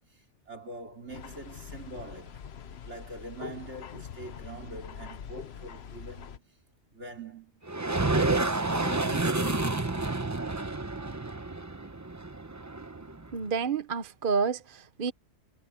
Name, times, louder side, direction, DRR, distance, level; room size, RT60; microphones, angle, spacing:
voice 1, 0.1-2.5 2.8-6.4 6.9-9.9, right 2 dB, 75° right, 4.4 m, -44 dB
sound 1, 1.1-6.4, left 7 dB, 65° left, 1.1 m, -44 dB
sound 2, 7.7-13.3, right 2 dB, 15° right, 0.8 m, -29 dB
voice 2, 13.3-15.1, right 5 dB, 50° right, 1.0 m, -29 dB
omnidirectional pair, 1.2 m